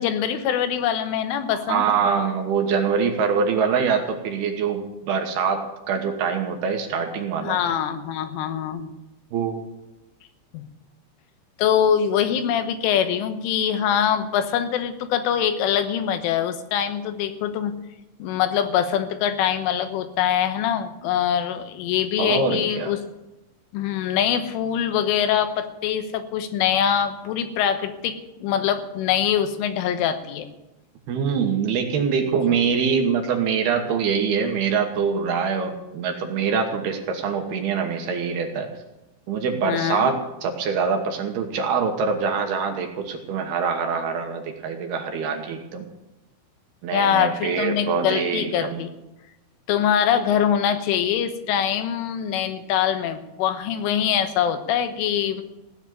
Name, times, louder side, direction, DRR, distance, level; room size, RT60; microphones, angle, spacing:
voice 1, 0.0-1.9 7.4-8.9 10.5-10.6 11.6-17.7 18.2-23.0 23.7-30.5 39.7-40.1 46.9-48.9 49.7-55.4, left 9 dB, 85° left, 9 dB, 3.6 m, -23 dB
voice 2, 1.5-7.6 9.3-9.6 22.2-22.9 31.1-38.7 39.3-45.9 46.8-48.8, right 6 dB, 70° right, 4 dB, 2.9 m, -24 dB
16.5 x 7.1 x 9.8 m, 0.98 s
omnidirectional pair, 5.5 m